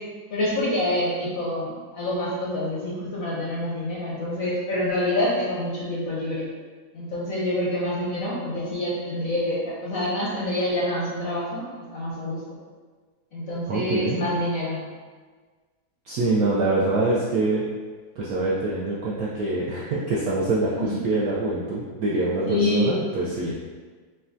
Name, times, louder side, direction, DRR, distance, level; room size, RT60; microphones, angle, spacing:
voice 1, 0.3-6.5 6.9-12.6 13.3-14.8 20.8-20.9 22.5-23.0, left 1 dB, 65° left, -6 dB, 0.9 m, -27 dB
voice 2, 13.7-14.2 16.1-17.6 18.2-23.5, right 2 dB, 75° right, -6 dB, 0.8 m, -25 dB
6.3 x 2.3 x 2.6 m, 1.5 s
omnidirectional pair, 2.1 m